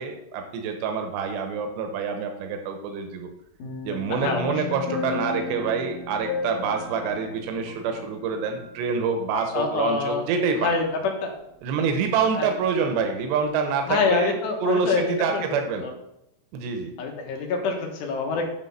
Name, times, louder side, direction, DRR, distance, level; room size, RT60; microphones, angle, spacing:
voice 1, 0.0-3.3 3.8-10.8 11.6-14.4 14.6-15.9 16.5-16.9, right 5 dB, 85° right, 5 dB, 3.1 m, -26 dB
sound 1, 3.6-9.0 9.4-9.5, left 3 dB, 60° left, 2.7 m, -34 dB
voice 2, 4.1-4.7 9.5-10.3 10.6-11.3 12.4-12.5 13.9-15.4 15.8-15.9 17.0-18.5, left 4 dB, 75° left, 1 dB, 3.3 m, -26 dB
10.5 x 4.1 x 5.6 m, 0.83 s
omnidirectional pair, 5.0 m